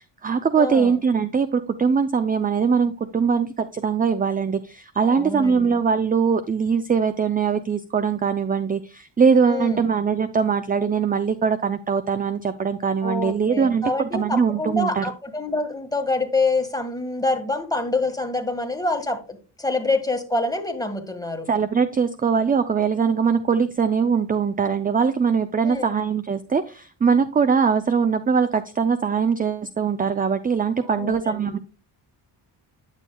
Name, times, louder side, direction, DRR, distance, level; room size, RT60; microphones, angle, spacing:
voice 1, 0.0-15.1 21.5-31.6, right 6 dB, 20° right, 11 dB, 0.4 m, -22 dB
voice 2, 0.6-0.9 5.0-5.7 9.5-9.8 13.0-21.5 25.6-26.0 30.8-31.5, left 2 dB, 10° left, 5 dB, 1.6 m, -26 dB
9.6 x 7.1 x 2.3 m, 0.34 s
cardioid pair, 80°, 46 cm